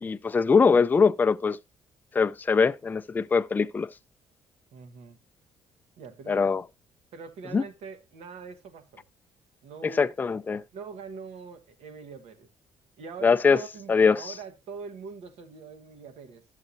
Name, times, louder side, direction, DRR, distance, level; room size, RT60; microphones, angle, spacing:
voice 1, 0.0-1.6 2.1-3.9 6.3-6.6 7.5-7.6 9.8-10.6 13.2-13.6 13.9-14.3, left 5 dB, 15° left, 0.3 m, -22 dB
voice 2, 4.7-5.2 6.0-6.5 7.1-9.0 9.6-10.1 10.7-12.5 13.0-16.4, right 5 dB, 80° right, 1.1 m, -43 dB
11.5 x 6.6 x 2.6 m
cardioid pair, 125°, 11 cm